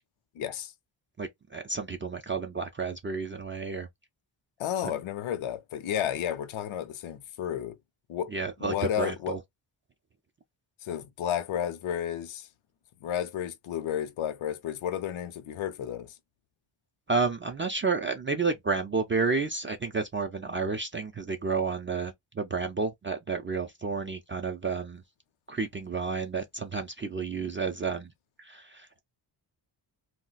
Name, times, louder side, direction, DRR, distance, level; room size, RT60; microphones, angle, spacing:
voice 1, 0.3-0.7 4.6-7.8 8.1-8.3 8.6-9.4 10.8-12.5 13.0-16.2, left 10 dB, 80° left, 0.6 m, -32 dB
voice 2, 1.2-3.9 8.3-9.4 17.1-25.0 25.5-28.1 28.4-29.0, right 4 dB, 25° right, 0.4 m, -31 dB
2.3 x 2.1 x 3.9 m
wide cardioid pair, 105°, 48 cm